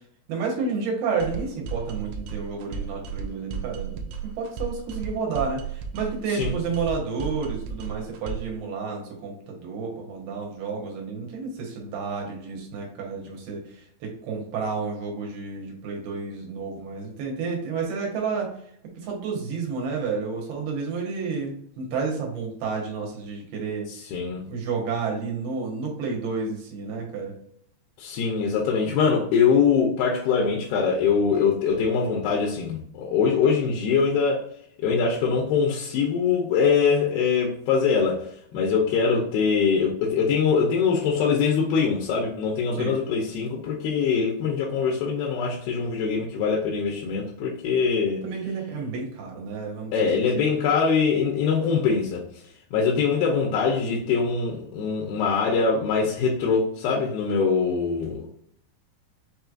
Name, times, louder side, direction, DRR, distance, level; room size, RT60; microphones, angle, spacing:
voice 1, 0.3-18.5 19.0-23.9 24.4-27.3 42.8-43.0 48.2-49.9 50.4-50.6, right 5 dB, 75° right, 0 dB, 3.0 m, -31 dB
sound 1, 1.2-8.6, right 7 dB, 90° right, 2.8 m, -34 dB
voice 2, 23.9-24.4 28.0-34.4 34.8-48.2 49.9-52.2 52.7-58.3, left 5 dB, 80° left, -1 dB, 2.5 m, -23 dB
6.8 x 3.2 x 2.4 m, 0.66 s
omnidirectional pair, 4.7 m